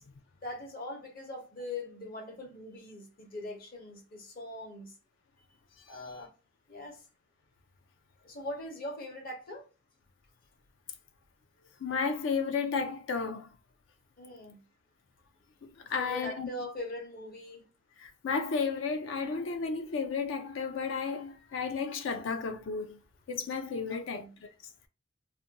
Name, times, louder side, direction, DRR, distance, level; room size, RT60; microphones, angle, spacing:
voice 1, 0.4-4.9 5.9-6.3 6.7-7.0 8.2-9.7 14.2-14.6 15.8-17.6 23.9-24.3, left 1 dB, 50° left, 0.8 m, -41 dB
voice 2, 11.8-13.5 15.9-16.5 18.0-23.0 23.3-24.5, left 5 dB, 70° left, 0.4 m, -33 dB
2.5 x 2.2 x 2.8 m
head